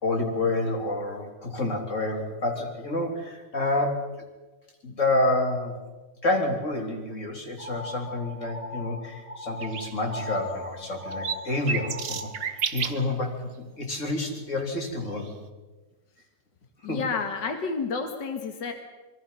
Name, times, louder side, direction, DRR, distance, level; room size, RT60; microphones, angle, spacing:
voice 1, 0.0-4.1 4.8-5.8 6.2-15.3 16.9-17.0, left 2 dB, 40° left, 2 dB, 3.8 m, -28 dB
sound 1, 7.6-12.5, left 2 dB, 5° right, 4.4 m, -39 dB
sound 2, 9.6-9.9 10.3-10.4 10.9-13.1 15.2-15.3, right 7 dB, 65° right, 1.7 m, -31 dB
voice 2, 16.8-18.7, left 5 dB, 80° left, 5 dB, 2.4 m, -30 dB
26.5 x 23.0 x 5.7 m, 1.2 s
omnidirectional pair, 1.9 m